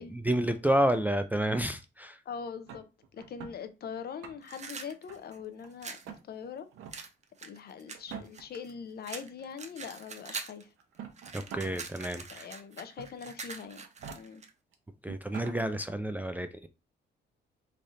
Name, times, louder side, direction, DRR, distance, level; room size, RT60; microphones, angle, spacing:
voice 1, 0.1-2.2 11.3-12.5 15.0-16.7, right 1 dB, 10° right, 0.3 m, -30 dB
voice 2, 2.3-2.9 3.1-6.0 6.3-6.7 7.4-10.7 12.3-13.8 14.2-14.4, left 6 dB, 50° left, 0.6 m, -42 dB
sound 1, 2.7-3.6 4.0-4.7 5.1-5.7 6.0-6.2 6.7-7.0 7.9-8.6 9.6-9.7 10.8-11.8 12.2-12.3 13.0-13.3 13.8-14.2 14.7-14.8 15.1-15.6, right 7 dB, 80° right, 0.8 m, -45 dB
sound 2, 4.4-6.1 6.9-8.7 9.0-10.6 10.9-14.5, right 5 dB, 35° right, 0.7 m, -43 dB
3.3 x 2.4 x 4.0 m
cardioid pair, 90°, 20 cm